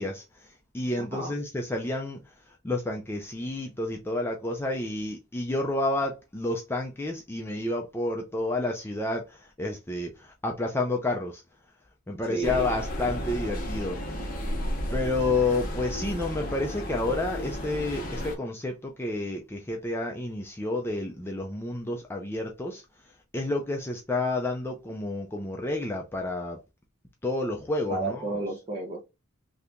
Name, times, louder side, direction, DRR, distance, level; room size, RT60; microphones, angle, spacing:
voice 1, 0.0-11.4 12.1-14.0 14.9-22.8 23.3-26.6 27.2-28.4, left 2 dB, 10° left, 0.4 m, -30 dB
voice 2, 12.3-12.7 27.9-29.0, right 2 dB, 30° right, 0.9 m, -32 dB
sound 1, 12.4-18.3, equal, 40° left, 0.9 m, -33 dB
2.8 x 2.5 x 3.4 m
head